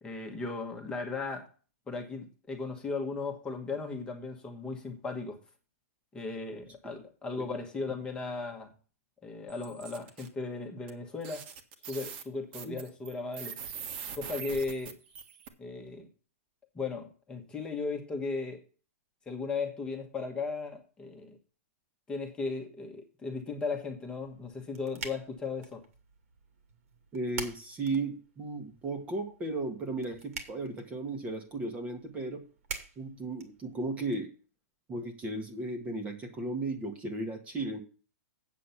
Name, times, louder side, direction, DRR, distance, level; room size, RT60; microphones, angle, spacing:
voice 1, 0.0-1.5 1.9-5.4 6.1-8.7 9.2-11.5 11.9-13.6 14.1-15.0 15.6-16.1 16.7-18.6 19.2-21.4 22.1-25.8, left 4 dB, 10° left, 1.4 m, -36 dB
sound 1, 9.5-10.3 10.9-11.0 11.2-15.5, right 7 dB, 45° right, 1.5 m, -42 dB
sound 2, 24.2-34.2, right 5 dB, 70° right, 2.3 m, -47 dB
voice 2, 27.1-32.4 33.0-34.3 34.9-37.8, right 2 dB, 15° right, 1.3 m, -35 dB
8.3 x 7.6 x 5.7 m
hypercardioid pair, 155°, 8 cm